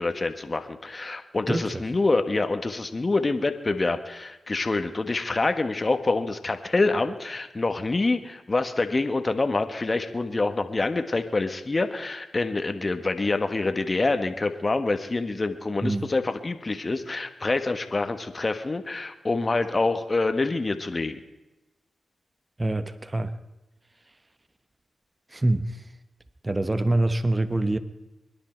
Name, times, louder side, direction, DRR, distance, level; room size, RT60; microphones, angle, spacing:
voice 1, 0.0-21.2, left 3 dB, 40° left, 8 dB, 1.4 m, -26 dB
voice 2, 1.5-1.8 15.8-16.1 22.6-23.4 25.3-25.9 26.4-27.8, right 2 dB, 30° right, 12 dB, 1.1 m, -25 dB
24.0 x 10.5 x 4.6 m, 1.0 s
supercardioid pair, 40°, 0 cm